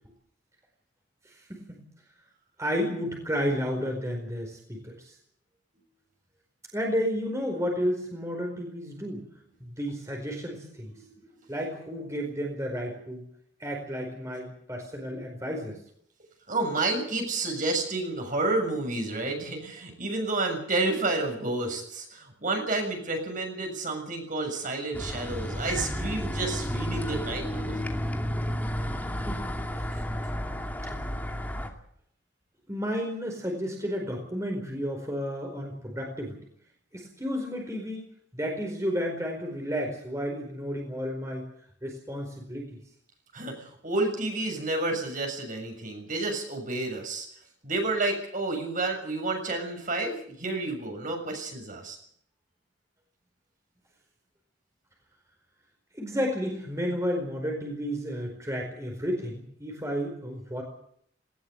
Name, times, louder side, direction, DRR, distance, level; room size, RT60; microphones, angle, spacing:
voice 1, 1.2-1.8 2.6-5.1 6.7-9.2 9.6-10.9 11.5-13.2 13.6-15.8 29.3-29.6 32.7-36.4 36.9-38.0 38.3-41.5 41.8-42.8 55.9-60.6, equal, 15° right, 1 dB, 4.7 m, -32 dB
voice 2, 11.1-11.5 16.5-27.8 43.3-47.3 47.6-52.0, right 2 dB, 45° right, 3 dB, 6.9 m, -30 dB
sound 1, 24.9-31.7, equal, 10° left, 2.5 m, -32 dB
19.5 x 18.5 x 8.2 m, 0.64 s
head